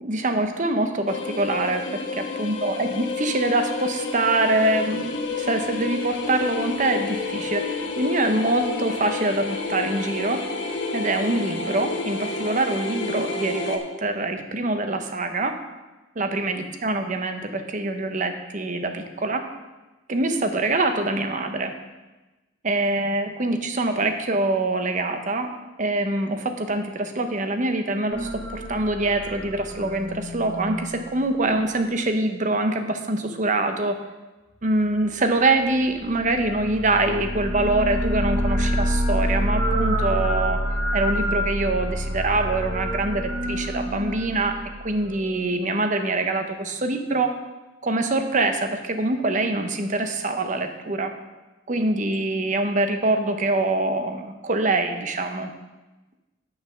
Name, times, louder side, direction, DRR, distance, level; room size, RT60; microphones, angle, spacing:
voice 1, 0.0-10.4 10.9-15.6 16.2-19.5 20.1-21.7 22.6-25.5 25.8-34.0 34.6-40.6 40.9-47.3 47.8-51.1 51.7-55.5, right 2 dB, 40° right, 7 dB, 0.8 m, -24 dB
sound 1, 1.1-13.8, left 4 dB, 75° left, 1.1 m, -30 dB
sound 2, 28.1-31.7 35.9-45.2, equal, 80° right, 1.8 m, -27 dB
8.4 x 6.8 x 5.7 m, 1.1 s
head